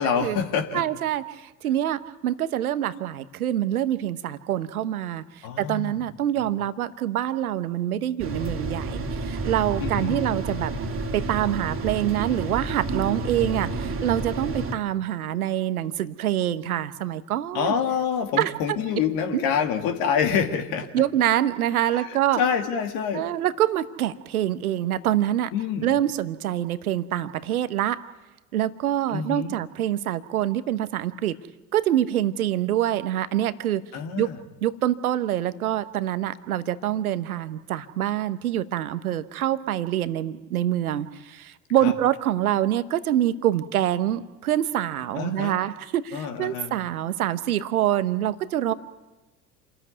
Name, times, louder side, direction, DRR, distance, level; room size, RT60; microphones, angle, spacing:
voice 1, 0.0-0.8 5.4-6.0 9.8-10.2 17.5-20.9 22.0-22.1 22.4-23.3 25.5-25.9 29.1-29.5 33.9-34.4 41.8-41.9 45.2-45.6 46.1-46.7, left 7 dB, 55° left, 5 dB, 2.5 m, -26 dB
voice 2, 0.7-5.2 5.6-10.7 11.1-17.7 18.4-18.8 19.3-19.4 20.9-22.4 23.1-25.5 25.8-28.0 28.5-31.3 31.7-33.8 34.2-34.3 34.6-48.7, right 12 dB, 75° right, 13 dB, 1.2 m, -25 dB
sound 1, 8.2-14.7, right 2 dB, 30° right, 2.5 m, -30 dB
28.0 x 14.0 x 9.5 m, 1.1 s
figure-of-eight pair, 70°, 44 cm